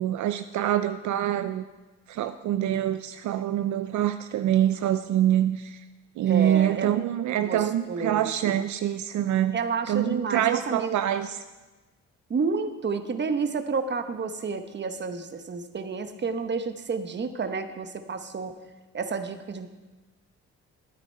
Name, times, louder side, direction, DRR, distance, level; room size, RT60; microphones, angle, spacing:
voice 1, 0.0-1.6 2.1-5.8 6.2-9.6 9.9-11.4, right 11 dB, 70° right, 9 dB, 0.5 m, -25 dB
voice 2, 6.3-7.0 7.5-8.6 9.5-11.0 12.3-18.6 18.9-19.7, right 4 dB, 35° right, 9 dB, 1.0 m, -30 dB
12.5 x 9.2 x 4.3 m, 1.2 s
cardioid pair, 90°, 30 cm